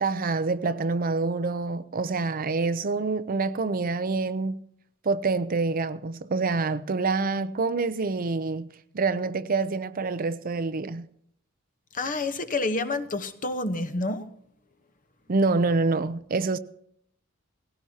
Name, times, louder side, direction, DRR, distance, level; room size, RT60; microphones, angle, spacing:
voice 1, 0.0-4.6 5.0-8.7 8.9-11.1 15.3-16.6, right 3 dB, 45° right, 0.6 m, -26 dB
voice 2, 11.9-14.3, left 2 dB, 40° left, 1.0 m, -29 dB
18.5 x 16.5 x 2.8 m
head